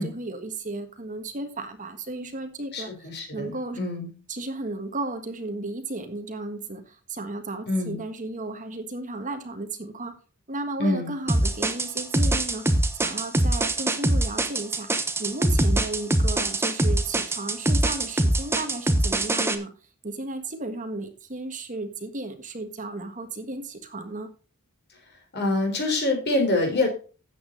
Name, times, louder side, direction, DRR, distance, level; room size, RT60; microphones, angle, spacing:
voice 1, 0.0-2.9 3.3-3.8 4.3-10.1 10.5-19.7 20.0-24.3, right 2 dB, 35° right, 7 dB, 1.5 m, -34 dB
voice 2, 2.7-4.1 7.7-8.0 10.8-11.1 25.3-26.9, left 2 dB, 50° left, 3 dB, 4.1 m, -25 dB
sound 1, 11.3-19.5, right 1 dB, 10° right, 1.0 m, -23 dB
13.0 x 8.5 x 3.9 m, 0.35 s
head